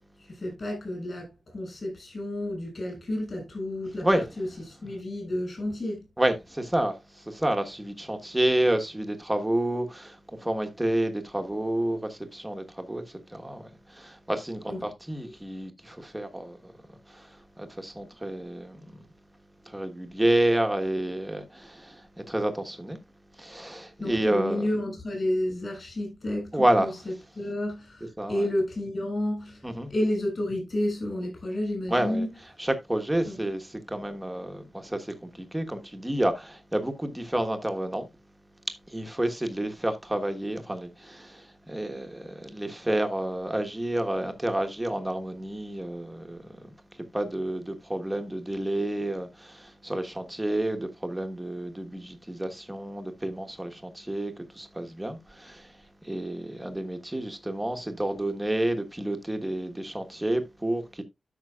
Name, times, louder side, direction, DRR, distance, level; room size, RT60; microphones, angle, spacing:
voice 1, 0.3-6.0 14.7-14.8 24.0-26.9 27.4-32.3 33.2-33.4, left 1 dB, 40° left, 6.6 m, -31 dB
voice 2, 6.2-19.0 19.6-23.0 23.4-24.7 26.5-26.9 28.2-28.5 29.6-29.9 31.9-32.3 32.6-38.1 38.9-46.7 47.1-55.7 56.0-61.0, right 1 dB, 10° right, 1.3 m, -29 dB
13.0 x 6.0 x 2.4 m
wide cardioid pair, 145°, 0 cm